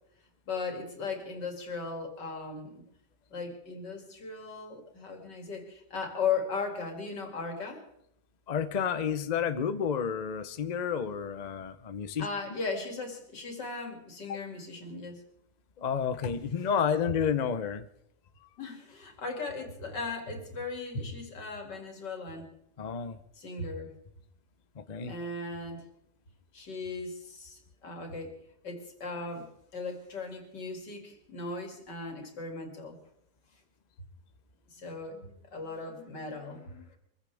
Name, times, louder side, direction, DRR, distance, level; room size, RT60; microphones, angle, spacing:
voice 1, 0.5-2.8 3.3-7.8 12.2-15.2 18.6-22.5 23.3-23.9 25.1-25.8 26.5-28.3 28.6-33.0 34.7-37.0, left 4 dB, 85° left, 3 dB, 3.2 m, -37 dB
voice 2, 8.5-12.3 14.3-14.4 15.8-17.8 22.8-23.2 24.8-25.1, left 7 dB, 45° left, 11 dB, 0.6 m, -30 dB
24.0 x 15.5 x 3.5 m, 0.73 s
omnidirectional pair, 1.8 m